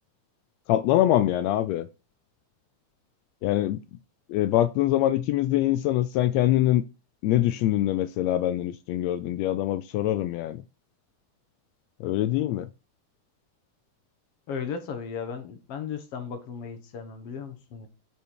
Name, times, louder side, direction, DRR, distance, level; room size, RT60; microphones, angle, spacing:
voice 1, 0.7-1.9 3.4-3.8 4.3-6.8 7.2-10.6 12.0-12.7, left 13 dB, 85° left, 1.5 m, -24 dB
voice 2, 14.5-17.9, left 6 dB, 60° left, 1.9 m, -35 dB
8.4 x 4.5 x 4.4 m
omnidirectional pair, 3.5 m